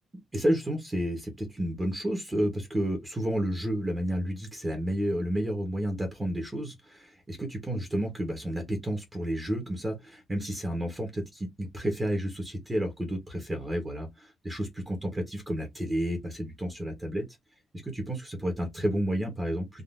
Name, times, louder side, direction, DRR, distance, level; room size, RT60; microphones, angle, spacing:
voice 1, 0.3-7.4 7.7-17.2 17.8-19.8, equal, 15° right, 1.1 m, -31 dB
3.6 x 2.6 x 2.5 m
cardioid pair, 155°, 0 cm